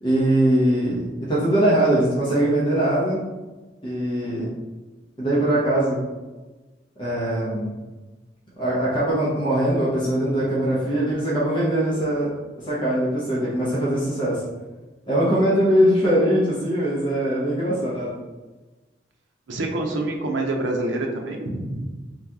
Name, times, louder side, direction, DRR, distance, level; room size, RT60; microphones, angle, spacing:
voice 1, 0.0-3.2 3.8-4.5 5.2-6.0 7.0-7.8 8.6-12.3 12.6-14.4 15.1-18.1, right 1 dB, 25° left, -7 dB, 0.9 m, -21 dB
voice 2, 19.5-22.0, right 2 dB, 80° right, 2 dB, 0.7 m, -26 dB
3.9 x 2.9 x 3.5 m, 1.2 s
head